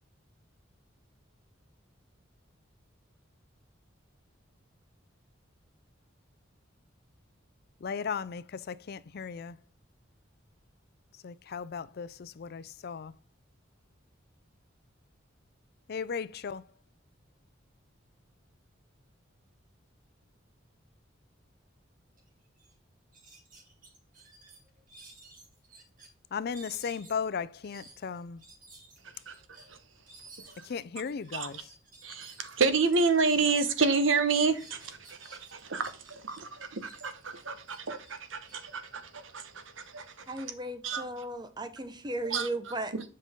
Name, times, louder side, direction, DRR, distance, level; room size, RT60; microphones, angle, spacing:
voice 1, 7.8-9.6 11.1-13.2 15.9-16.7 26.3-28.4 30.6-31.7, left 6 dB, 55° left, 0.4 m, -36 dB
sound 1, 22.2-22.3 22.6-22.7 23.1-26.1 26.5-33.8 34.1-36.4 36.8-39.7, right 3 dB, 45° right, 2.5 m, -54 dB
voice 2, 32.0-40.4 40.8-41.0 42.3-42.5 42.9-43.0, right 4 dB, 75° right, 1.1 m, -29 dB
voice 3, 40.3-42.9, right 1 dB, 20° right, 0.9 m, -36 dB
7.5 x 5.4 x 3.5 m
head